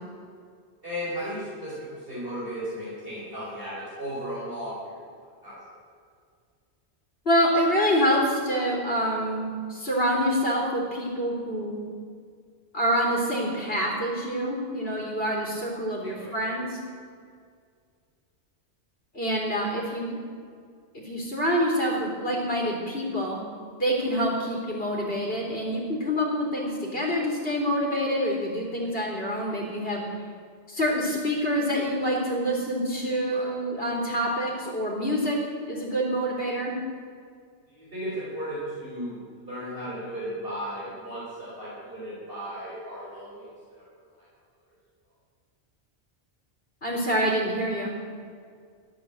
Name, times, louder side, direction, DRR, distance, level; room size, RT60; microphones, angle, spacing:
voice 1, 0.8-5.0 5.4-5.6 16.0-16.3 33.3-33.5 37.7-43.8 44.1-44.2, equal, 55° right, -9 dB, 5.2 m, -35 dB
voice 2, 7.3-11.8 12.7-16.8 19.1-20.2 20.9-23.4 23.8-30.0 30.7-35.4 35.7-36.8 46.8-47.9, equal, 60° left, -3 dB, 3.5 m, -26 dB
15.0 x 11.0 x 7.7 m, 2.1 s
omnidirectional pair, 1.2 m